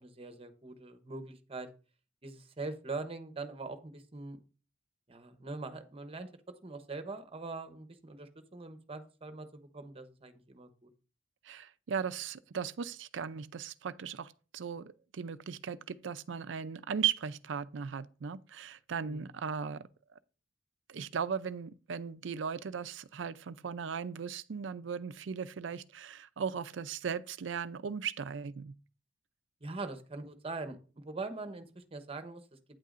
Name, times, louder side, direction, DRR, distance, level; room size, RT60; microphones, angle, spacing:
voice 1, 0.0-1.7 2.2-4.4 5.1-6.3 6.6-10.9 19.0-19.3 29.6-32.4, right 3 dB, 30° right, 0.9 m, -42 dB
voice 2, 11.4-19.8 20.9-28.7, right 7 dB, 70° right, 0.5 m, -37 dB
9.1 x 8.3 x 2.5 m
head